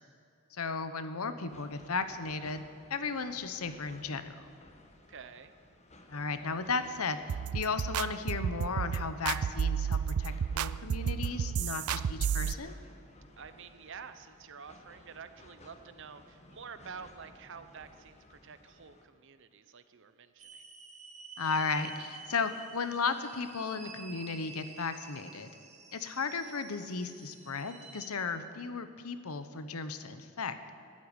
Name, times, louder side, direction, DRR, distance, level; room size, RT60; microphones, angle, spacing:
voice 1, 0.5-2.6 2.9-4.3 6.1-7.2 7.5-12.8 21.4-25.5 25.9-30.5, left 4 dB, 85° left, 10 dB, 0.9 m, -35 dB
sound 1, 1.5-19.0, left 1 dB, 30° left, 1.3 m, -57 dB
voice 2, 5.1-5.5 13.4-20.6, right 6 dB, 60° right, 11 dB, 0.8 m, -49 dB
sound 2, 7.3-12.5, right 7 dB, 80° right, 0.4 m, -31 dB
sound 3, 20.4-28.1, right 4 dB, 30° right, 1.6 m, -50 dB
13.5 x 8.4 x 9.7 m, 2.5 s
head